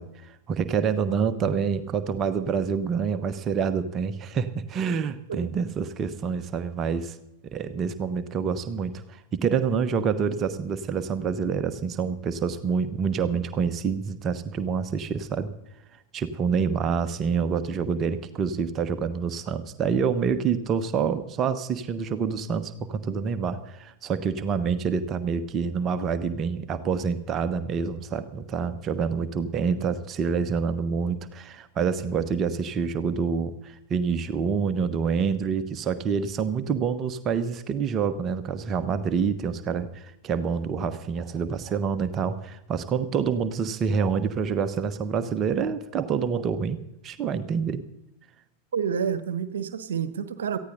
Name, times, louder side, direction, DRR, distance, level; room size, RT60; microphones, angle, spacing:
voice 1, 0.0-7.2 7.4-15.5 16.1-47.8, right 6 dB, 30° right, 1.1 m, -27 dB
voice 2, 48.7-50.6, right 7 dB, 65° right, 1.2 m, -28 dB
18.5 x 15.0 x 4.1 m
figure-of-eight pair, 90°, 0 cm